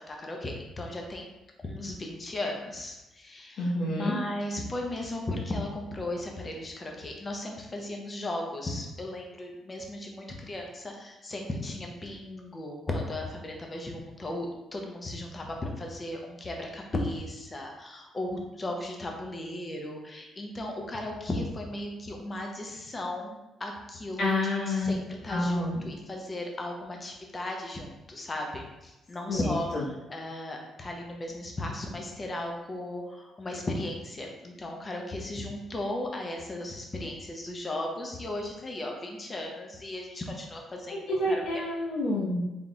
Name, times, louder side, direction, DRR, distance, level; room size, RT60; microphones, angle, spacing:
voice 1, 0.0-1.3 1.6-41.4, left 1 dB, 30° left, 1 dB, 0.7 m, -36 dB
voice 2, 3.6-4.2 24.2-24.9 25.3-25.9 29.3-29.8 41.1-42.4, left 1 dB, 65° left, -7 dB, 1.0 m, -28 dB
3.9 x 3.6 x 2.3 m, 1.0 s
cardioid pair, 90°, 0 cm